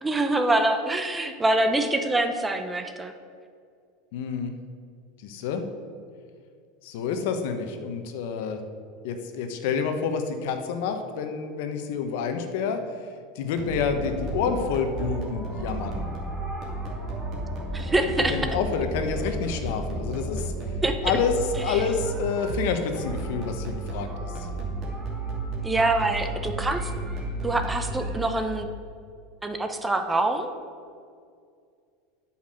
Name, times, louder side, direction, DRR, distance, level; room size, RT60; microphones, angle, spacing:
voice 1, 0.0-3.1 17.7-18.4 20.8-21.2 21.7-21.8 25.6-26.9 27.4-28.7 29.4-30.5, right 2 dB, 10° right, 7 dB, 0.7 m, -25 dB
voice 2, 4.1-4.5 5.2-5.6 6.8-8.6 9.0-12.8 13.3-16.0 18.3-20.5 21.0-21.3 21.6-24.5, left 6 dB, 70° left, 7 dB, 1.1 m, -28 dB
sound 1, 13.6-28.5, right 2 dB, 40° right, 2.5 m, -32 dB
8.5 x 5.7 x 7.8 m, 2.2 s
supercardioid pair, 130°, 0 cm